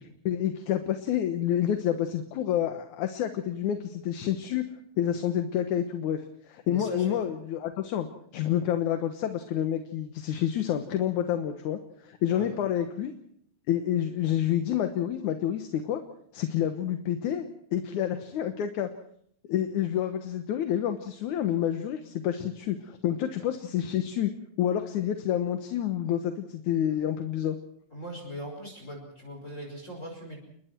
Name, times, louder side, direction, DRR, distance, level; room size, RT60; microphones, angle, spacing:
voice 1, 0.0-4.7 5.0-6.2 6.5-8.1 8.3-13.1 13.7-16.0 16.3-18.9 19.5-24.3 24.6-27.6, left 10 dB, 75° left, 7 dB, 2.7 m, -28 dB
voice 2, 6.7-7.1 12.3-12.5 27.9-30.4, equal, 20° left, 0 dB, 5.5 m, -40 dB
29.0 x 22.0 x 4.6 m, 0.66 s
omnidirectional pair, 3.5 m